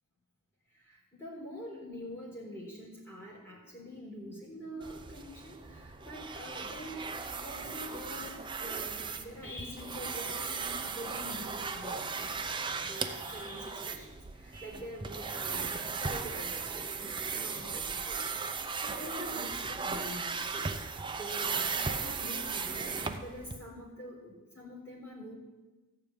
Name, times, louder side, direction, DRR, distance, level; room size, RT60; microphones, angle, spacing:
voice 1, 0.9-7.1 7.4-12.3 12.8-14.1 14.4-20.7 21.2-25.3, equal, 10° left, -5 dB, 3.8 m, -45 dB
sound 1, 4.8-23.6, right 5 dB, 20° right, 0.6 m, -37 dB
14.0 x 4.9 x 8.6 m, 1.2 s
head